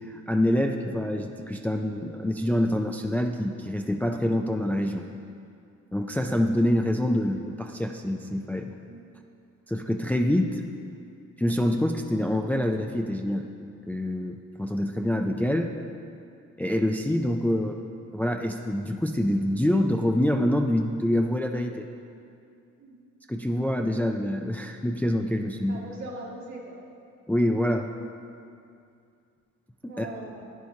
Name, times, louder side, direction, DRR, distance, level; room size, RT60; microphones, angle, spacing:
voice 1, 0.1-5.1 5.9-8.7 9.7-10.6 11.4-13.4 13.9-15.7 16.6-17.8 18.1-21.9 23.3-25.8 27.3-27.9 29.8-30.1, left 1 dB, 5° left, 4 dB, 0.4 m, -26 dB
voice 2, 25.7-26.8 29.9-30.4, right 2 dB, 65° right, -3 dB, 1.9 m, -40 dB
11.0 x 9.2 x 2.8 m, 2.4 s
cardioid pair, 85°, 30 cm